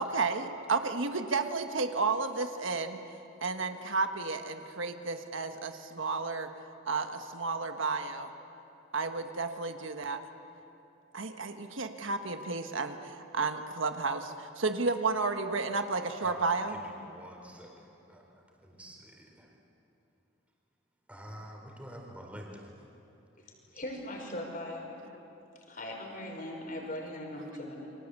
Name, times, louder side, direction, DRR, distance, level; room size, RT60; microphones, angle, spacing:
voice 1, 0.0-3.0 3.4-6.5 6.8-8.3 8.9-10.2 11.1-16.7, right 4 dB, 70° right, 6 dB, 1.5 m, -32 dB
voice 2, 16.2-19.5 21.1-22.8, equal, 5° right, 0 dB, 4.2 m, -47 dB
voice 3, 23.7-24.9 25.7-27.9, left 1 dB, 45° left, 1 dB, 5.5 m, -39 dB
29.5 x 24.5 x 8.4 m, 3.0 s
head